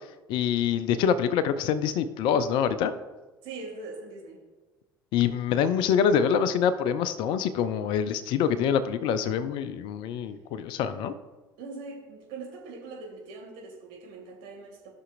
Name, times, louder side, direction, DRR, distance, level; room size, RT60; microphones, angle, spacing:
voice 1, 0.3-2.9 5.1-11.1, left 7 dB, 50° left, 13 dB, 0.5 m, -25 dB
voice 2, 3.4-4.4 11.6-14.9, right 3 dB, 60° right, 0 dB, 2.2 m, -41 dB
14.0 x 6.1 x 2.5 m, 1.2 s
figure-of-eight pair, 65°, 10 cm